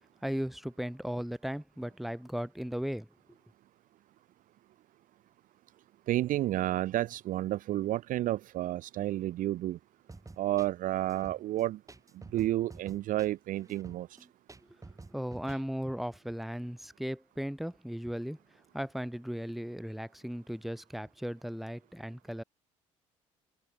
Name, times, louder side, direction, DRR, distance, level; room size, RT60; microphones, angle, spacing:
voice 1, 0.2-3.1 15.1-18.4 18.7-22.4, equal, ahead, 1.6 m, -36 dB
voice 2, 6.1-9.8 10.4-11.8 12.3-14.1, right 14 dB, 50° right, 0.7 m, -31 dB
sound 1, 10.1-15.6, right 3 dB, 20° right, 7.8 m, -50 dB
figure-of-eight pair, 50°, 17 cm